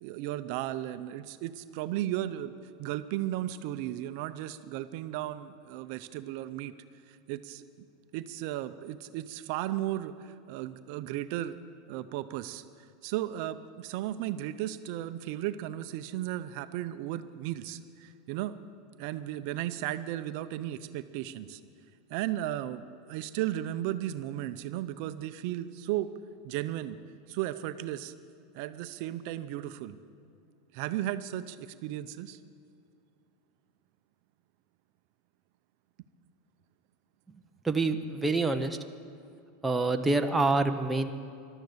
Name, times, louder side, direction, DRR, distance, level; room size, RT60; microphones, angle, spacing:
voice 1, 0.0-2.5 2.8-6.7 7.3-7.6 8.1-11.5 11.9-12.6 13.0-18.6 19.0-21.6 22.1-26.1 26.4-27.0 27.3-28.1 28.5-30.0 30.7-32.4, right 13 dB, 55° right, 11 dB, 0.6 m, -35 dB
voice 2, 37.6-38.8 39.6-41.1, right 3 dB, 5° right, 5 dB, 0.7 m, -26 dB
14.0 x 12.0 x 8.0 m, 2.4 s
supercardioid pair, 155°, 0 cm